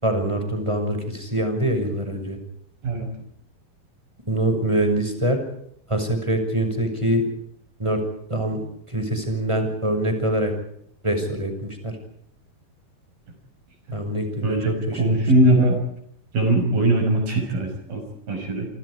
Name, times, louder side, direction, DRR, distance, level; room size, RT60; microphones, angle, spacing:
voice 1, 0.0-2.4 4.3-5.4 5.9-7.2 7.8-8.0 8.3-10.5 11.0-11.9 13.9-15.3, right 1 dB, 5° right, 6 dB, 5.9 m, -24 dB
voice 2, 15.0-15.8 16.3-18.7, right 1 dB, 60° right, 5 dB, 7.5 m, -20 dB
28.5 x 26.5 x 4.9 m, 0.71 s
omnidirectional pair, 4.6 m